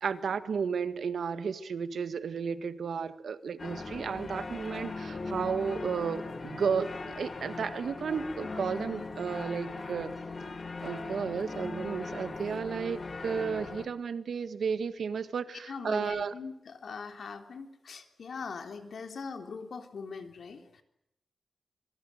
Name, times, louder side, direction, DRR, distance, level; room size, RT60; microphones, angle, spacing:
voice 1, 0.0-10.1 10.8-16.3, right 6 dB, 85° right, 11 dB, 1.7 m, -33 dB
sound 1, 3.6-13.9, left 3 dB, 45° left, 2.5 m, -39 dB
voice 2, 15.6-20.8, left 5 dB, 75° left, 6 dB, 3.5 m, -41 dB
26.0 x 23.0 x 7.9 m, 0.81 s
wide cardioid pair, 115°, 0 cm